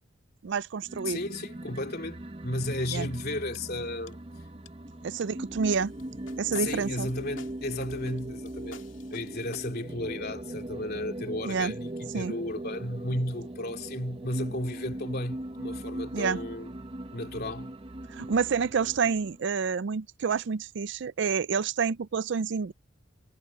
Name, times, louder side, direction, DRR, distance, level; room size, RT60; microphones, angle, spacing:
voice 1, 0.4-1.2 2.9-3.1 5.0-5.9 6.4-7.1 11.4-11.7 12.1-12.3 16.1-16.4 18.1-22.7, right 5 dB, 60° right, 0.4 m, -28 dB
sound 1, 0.8-19.4, right 1 dB, 30° right, 0.9 m, -40 dB
voice 2, 1.0-4.2 6.6-8.8 9.1-16.7 17.1-17.7, left 1 dB, 50° left, 3.1 m, -34 dB
sound 2, 3.6-3.7 4.1-4.3 4.7-4.8 5.2-5.3 5.7-9.6, left 4 dB, 70° left, 2.4 m, -50 dB
head